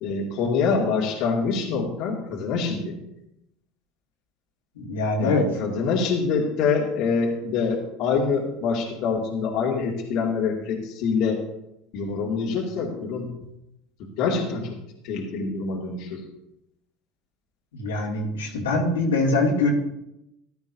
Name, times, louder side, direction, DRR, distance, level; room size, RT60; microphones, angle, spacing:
voice 1, 0.0-3.0 5.2-11.4 11.9-13.3 14.0-14.8 15.0-16.2, left 5 dB, 60° left, -1 dB, 2.2 m, -25 dB
voice 2, 4.7-5.5 17.7-19.7, left 2 dB, 80° left, -3 dB, 2.6 m, -23 dB
15.5 x 11.5 x 2.8 m, 0.85 s
hypercardioid pair, 75°, 0 cm